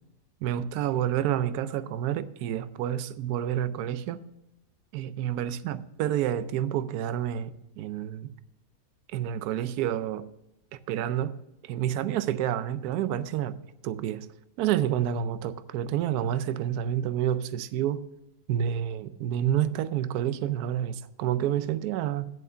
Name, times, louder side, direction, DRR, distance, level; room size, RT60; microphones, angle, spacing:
voice 1, 0.4-4.2 4.9-8.3 9.1-10.2 10.7-11.4 11.6-13.6 13.8-14.3 14.6-18.0 18.5-22.3, right 10 dB, 75° right, 1.1 m, -29 dB
7.9 x 7.3 x 6.6 m
omnidirectional pair, 1.8 m